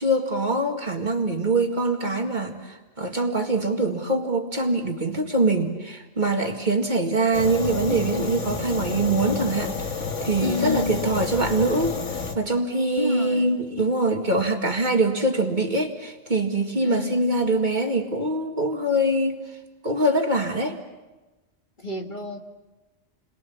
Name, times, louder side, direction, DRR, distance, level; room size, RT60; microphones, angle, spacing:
voice 1, 0.0-9.7 10.2-12.0 12.3-19.4 19.8-20.8, right 2 dB, 35° right, 3 dB, 2.1 m, -23 dB
Fire, 7.3-12.3, left 5 dB, 70° left, 1.9 m, -30 dB
voice 2, 10.4-11.0 13.0-13.6 16.8-17.4 21.8-22.4, left 3 dB, 40° left, 3 dB, 1.9 m, -30 dB
29.5 x 22.5 x 7.3 m, 1.2 s
omnidirectional pair, 1.3 m